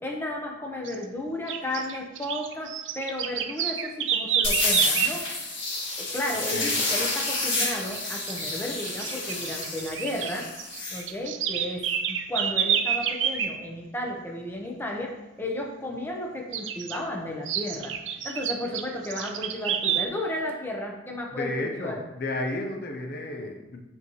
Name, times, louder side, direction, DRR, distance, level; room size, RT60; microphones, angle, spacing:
voice 1, 0.0-5.3 6.0-10.5 10.9-15.1 15.4-17.9 18.2-22.0, left 1 dB, 10° left, 0 dB, 0.9 m, -33 dB
sound 1, 0.9-1.0 1.5-5.2 7.8-8.0 8.3-8.4 8.9-10.3 10.6-13.5 16.5-17.0 17.5-20.0, right 8 dB, 80° right, 0.6 m, -28 dB
sound 2, 4.4-11.0, left 2 dB, 85° left, 2.2 m, -29 dB
voice 2, 21.3-23.8, left 2 dB, 55° left, 2 dB, 0.7 m, -32 dB
8.1 x 5.5 x 3.1 m, 1.0 s
head